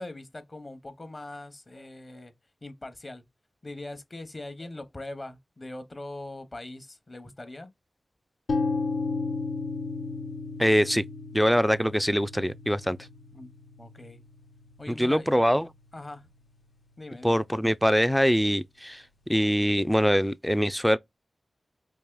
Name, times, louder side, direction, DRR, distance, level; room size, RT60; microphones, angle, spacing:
voice 1, 0.0-2.3 2.6-3.2 3.6-7.7 13.3-13.5 13.8-14.2 14.8-15.3 15.9-16.3 17.0-17.4, left 2 dB, 35° left, 0.8 m, -41 dB
sound 1, 8.5-16.4, left 3 dB, 85° left, 0.6 m, -34 dB
voice 2, 10.6-11.0 11.3-13.0 15.0-15.7 17.2-19.0 19.3-21.0, equal, ahead, 0.3 m, -23 dB
4.7 x 2.8 x 2.2 m
wide cardioid pair, 65°, 0 cm